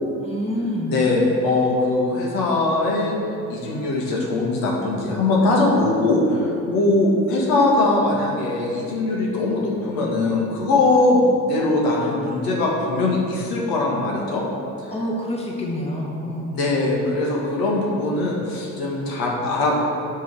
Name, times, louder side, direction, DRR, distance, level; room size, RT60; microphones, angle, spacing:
voice 1, 0.2-0.9 14.9-16.6, left 1 dB, 15° left, -2 dB, 1.5 m, -27 dB
voice 2, 0.9-3.2 3.5-14.4 16.5-19.8, left 2 dB, 80° left, -3 dB, 1.7 m, -21 dB
8.2 x 3.7 x 6.3 m, 2.6 s
supercardioid pair, 85°, 36 cm